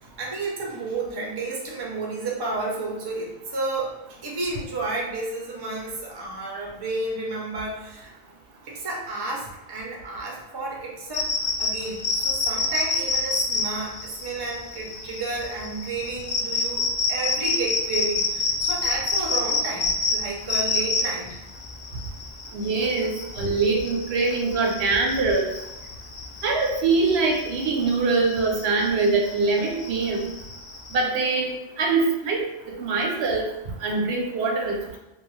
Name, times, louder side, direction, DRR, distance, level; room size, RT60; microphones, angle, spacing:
voice 1, 0.0-8.1 8.6-11.3 11.6-21.4, right 2 dB, 30° right, -2 dB, 0.4 m, -31 dB
sound 1, 11.1-31.0, left 3 dB, 60° left, 0.4 m, -28 dB
voice 2, 22.5-25.5 26.4-30.2 30.9-33.5 33.8-35.0, right 3 dB, 75° right, 0 dB, 0.8 m, -23 dB
2.3 x 2.3 x 3.0 m, 0.97 s
omnidirectional pair, 1.1 m